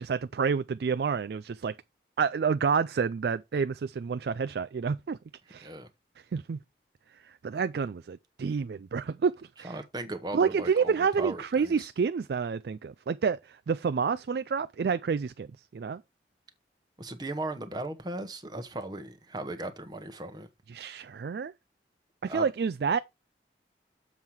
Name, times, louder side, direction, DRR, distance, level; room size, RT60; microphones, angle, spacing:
voice 1, 0.0-1.7 2.2-5.2 5.5-5.7 6.3-6.6 7.2-9.8 10.3-15.5 15.7-16.0 20.7-21.5 22.2-23.0, right 6 dB, 65° right, 0.3 m, -29 dB
voice 2, 9.6-11.9 17.0-20.5 22.3-22.5, right 2 dB, 25° right, 0.9 m, -37 dB
7.2 x 5.6 x 4.6 m
head